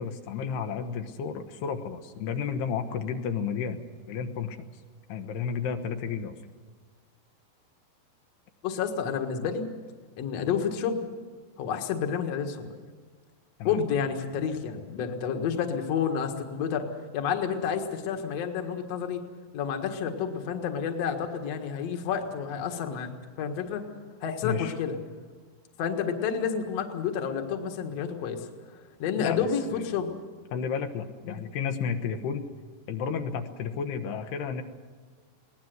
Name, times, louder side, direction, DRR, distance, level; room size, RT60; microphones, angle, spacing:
voice 1, 0.0-3.8 4.1-4.7 5.1-6.4 13.6-13.8 24.4-24.7 29.2-29.9 30.5-32.5 32.9-34.6, left 6 dB, 80° left, 6 dB, 3.2 m, -32 dB
voice 2, 8.6-9.7 10.2-11.0 11.6-12.7 13.6-16.9 17.1-19.2 19.5-23.1 23.4-23.8 24.2-25.0 25.8-28.5 29.0-30.1 31.2-31.4, left 7 dB, 50° left, 4 dB, 2.1 m, -30 dB
22.0 x 18.0 x 7.9 m, 1.5 s
omnidirectional pair, 4.7 m